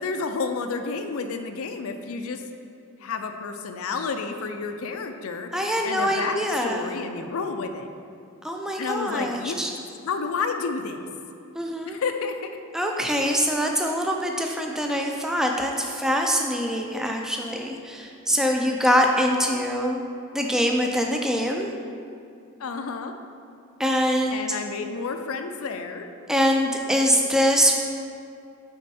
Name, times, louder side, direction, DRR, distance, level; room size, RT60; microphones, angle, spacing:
voice 1, 0.0-2.4 3.0-7.9 8.8-9.6 10.0-11.0 11.9-12.5 22.6-23.1 24.3-26.1, left 4 dB, 75° left, 6 dB, 0.4 m, -30 dB
voice 2, 5.5-6.9 8.4-9.7 11.5-12.0 12.7-20.0 20.3-21.7 23.8-24.6 26.3-27.8, equal, ahead, 1 dB, 0.3 m, -24 dB
6.2 x 4.4 x 4.2 m, 2.5 s
head